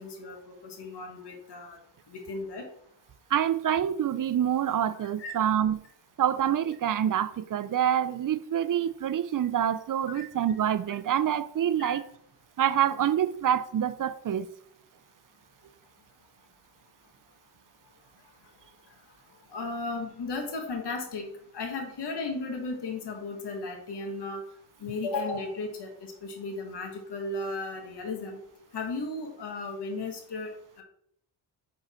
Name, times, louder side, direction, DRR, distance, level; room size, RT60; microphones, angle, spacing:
voice 1, 0.0-1.8 2.1-2.7 4.9-5.3 10.1-10.2 11.8-11.9 19.5-21.3 21.5-24.4 24.8-28.4 28.7-30.5, left 3 dB, 60° left, 1.6 m, -35 dB
voice 2, 3.3-5.8 6.2-12.0 12.6-14.5, right 10 dB, 45° right, 0.5 m, -26 dB
6.3 x 4.7 x 4.4 m
cardioid pair, 75°, 45 cm